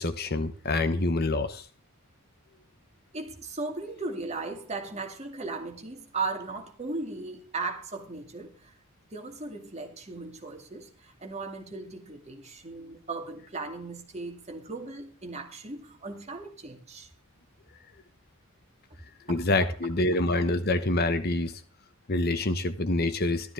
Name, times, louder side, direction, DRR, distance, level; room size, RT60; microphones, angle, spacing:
voice 1, 0.0-1.6 19.3-21.6 22.1-23.5, left 2 dB, 45° left, 1.1 m, -26 dB
voice 2, 3.1-8.8 9.1-17.1 18.9-19.0 19.3-19.7, right 3 dB, 30° right, 2.3 m, -37 dB
13.5 x 12.5 x 3.5 m
head